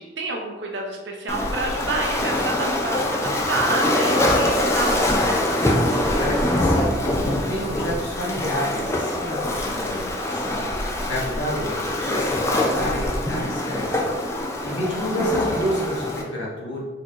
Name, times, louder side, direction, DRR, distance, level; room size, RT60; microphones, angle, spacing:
voice 1, 0.0-5.5, right 2 dB, 65° right, 0 dB, 0.7 m, -28 dB
Waves surf, 1.3-16.2, left 1 dB, 15° left, 0.4 m, -24 dB
voice 2, 6.2-6.9 7.2-14.1 14.3-16.8, equal, 65° left, -5 dB, 1.1 m, -29 dB
4.1 x 3.0 x 2.5 m, 1.2 s
head